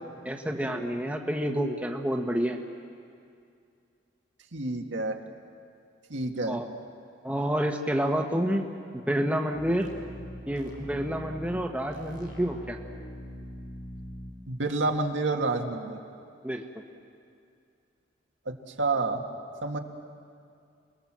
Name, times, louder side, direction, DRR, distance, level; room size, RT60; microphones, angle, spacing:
voice 1, 0.2-2.6 6.5-6.7 7.2-8.7 9.1-9.9 10.5-12.8 16.4-16.6, equal, 5° right, 2 dB, 1.2 m, -28 dB
voice 2, 4.5-5.2 6.1-6.6 14.5-16.0 18.5-19.2 19.6-19.8, right 3 dB, 80° right, 3 dB, 1.8 m, -29 dB
sound 1, 9.5-14.3, equal, 85° left, 4.9 m, -42 dB
28.0 x 20.5 x 7.5 m, 2.4 s
head